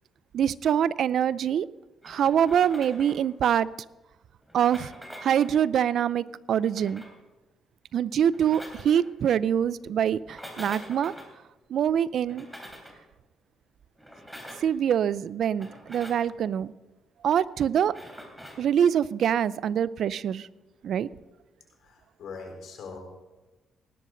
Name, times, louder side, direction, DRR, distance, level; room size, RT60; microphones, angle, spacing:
voice 1, 0.3-1.7 2.0-3.7 4.5-4.9 5.2-7.0 7.9-11.1 11.7-12.5 14.6-16.7 17.2-17.9 18.6-20.5 20.8-21.1, right 9 dB, 65° right, 19 dB, 0.4 m, -24 dB
sound 1, 2.0-3.3 4.4-5.6 6.5-7.2 8.2-9.0 10.2-11.3 12.2-13.0 14.0-14.7 15.5-16.3 17.8-18.7, equal, 5° right, 3.2 m, -45 dB
voice 2, 21.8-23.0, left 4 dB, 70° left, 2 dB, 4.1 m, -41 dB
18.0 x 11.5 x 3.8 m, 1.1 s
cardioid pair, 90°, 0 cm